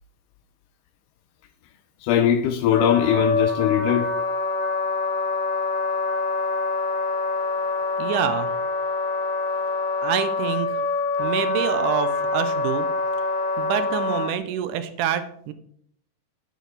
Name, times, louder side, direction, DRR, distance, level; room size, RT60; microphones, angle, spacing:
voice 1, 2.0-4.1, left 10 dB, 80° left, 2.1 m, -20 dB
Wind instrument woodwind instrument, 2.7-14.3, left 3 dB, 60° left, 3.2 m, -25 dB
voice 2, 8.0-8.5 10.0-10.8 11.2-12.9 13.6-15.5, right 9 dB, 80° right, 2.0 m, -26 dB
9.0 x 8.0 x 3.3 m
omnidirectional pair, 3.9 m